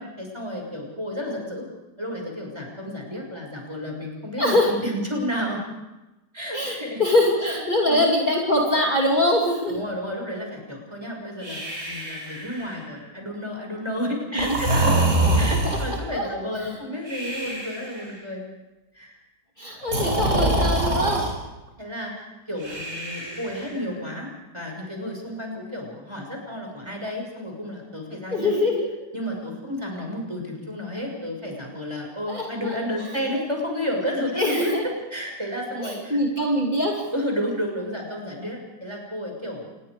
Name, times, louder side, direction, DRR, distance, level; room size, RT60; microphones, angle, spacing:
voice 1, 0.0-1.7 2.0-5.6 6.3-7.0 7.4-8.1 9.7-15.1 15.4-18.4 18.9-19.1 21.8-24.3 24.5-28.5 29.1-36.2 37.1-39.7, equal, 15° right, 1 dB, 6.1 m, -31 dB
voice 2, 4.4-4.7 6.5-9.8 14.3-14.6 15.4-16.7 19.6-21.2 28.3-28.9 32.3-33.1 34.4-34.9 35.8-37.1, left 1 dB, 30° left, -2 dB, 2.8 m, -23 dB
Breathing, 11.4-13.0 14.4-16.0 17.1-18.0 19.8-21.3 22.6-23.8, right 1 dB, 45° right, 5.5 m, -25 dB
28.0 x 21.0 x 5.0 m, 1.0 s
omnidirectional pair, 1.7 m